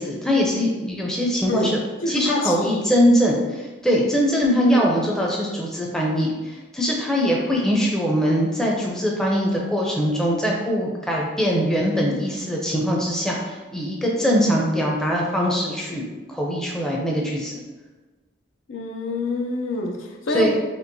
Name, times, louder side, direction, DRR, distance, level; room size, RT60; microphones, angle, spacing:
voice 1, 0.0-1.7 2.1-16.0 16.3-17.6 20.3-20.5, equal, 5° left, -3 dB, 0.5 m, -22 dB
voice 2, 2.0-3.0 4.6-4.9 18.7-20.5, left 2 dB, 85° left, 2 dB, 0.6 m, -26 dB
4.4 x 3.2 x 2.7 m, 1.2 s
head